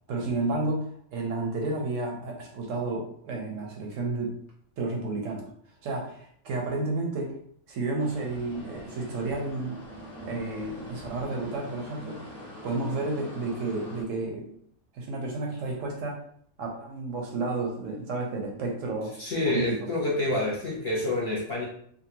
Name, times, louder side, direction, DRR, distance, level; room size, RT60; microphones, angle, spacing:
voice 1, 0.1-4.3 4.8-5.4 5.8-7.4 7.7-9.8 10.2-12.2 12.6-14.4 14.9-16.2 16.6-19.1 19.4-19.8, right 3 dB, 70° right, 0 dB, 0.9 m, -31 dB
sound 1, 8.0-14.0, equal, 5° left, 0.9 m, -43 dB
voice 2, 19.2-21.6, left 2 dB, 45° left, -6 dB, 0.8 m, -28 dB
2.7 x 2.4 x 2.7 m, 0.64 s
omnidirectional pair, 1.5 m